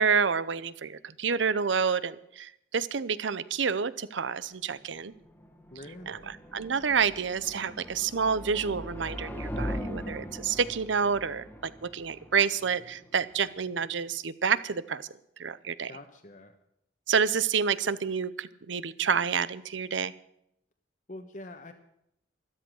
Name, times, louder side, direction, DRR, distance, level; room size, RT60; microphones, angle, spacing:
voice 1, 0.0-5.1 6.1-15.1 15.4-15.9 17.1-20.1, right 6 dB, 75° right, 17 dB, 0.7 m, -28 dB
sound 1, 5.0-14.0, equal, 10° left, 1.5 m, -40 dB
voice 2, 5.7-6.4 15.9-16.5 21.1-21.7, left 1 dB, 40° left, 5 dB, 1.2 m, -45 dB
13.0 x 13.0 x 6.4 m, 0.76 s
head